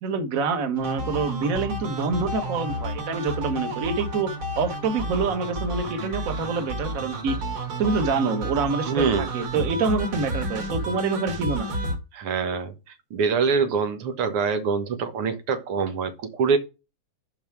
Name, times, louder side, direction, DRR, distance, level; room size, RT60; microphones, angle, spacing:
voice 1, 0.0-7.4 7.8-11.7, right 4 dB, 45° right, 1.4 m, -26 dB
sound 1, 0.8-12.0, right 1 dB, 70° right, 2.9 m, -31 dB
voice 2, 8.9-9.3 12.1-12.7 13.1-16.6, right 5 dB, 90° right, 2.3 m, -24 dB
7.1 x 5.7 x 4.6 m
omnidirectional pair, 2.4 m